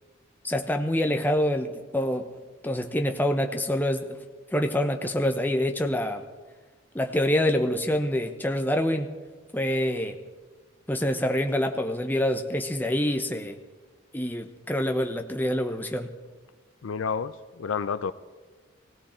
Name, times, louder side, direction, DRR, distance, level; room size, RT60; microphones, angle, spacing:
voice 1, 0.4-2.3 2.6-4.2 4.5-6.2 6.9-9.1 9.5-10.2 10.9-13.5 14.1-16.1, left 1 dB, 10° left, 5 dB, 0.8 m, -26 dB
voice 2, 16.8-18.1, left 6 dB, 80° left, 15 dB, 0.5 m, -30 dB
17.5 x 17.0 x 4.4 m, 1.4 s
head